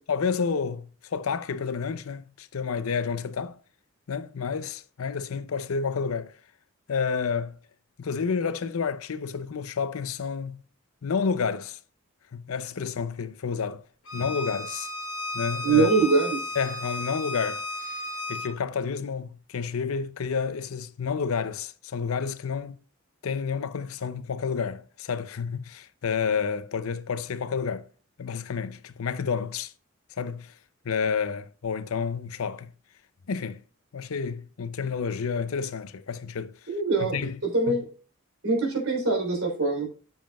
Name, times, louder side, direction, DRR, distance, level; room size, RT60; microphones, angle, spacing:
voice 1, 0.1-3.6 4.1-6.3 6.9-7.5 8.0-10.6 11.0-11.8 12.3-13.8 14.1-14.9 15.3-15.9 16.6-22.8 23.2-27.9 28.2-29.7 30.2-30.5 30.8-32.7 33.3-33.6 33.9-36.7 37.0-37.4 37.7-37.8, left 6 dB, 85° left, 0.5 m, -30 dB
Bowed string instrument, 14.1-18.5, left 2 dB, 65° left, 1.1 m, -34 dB
voice 2, 15.6-16.4 36.7-37.1 37.4-37.9 38.4-39.9, right 3 dB, 75° right, 3.4 m, -23 dB
7.6 x 7.1 x 2.3 m
head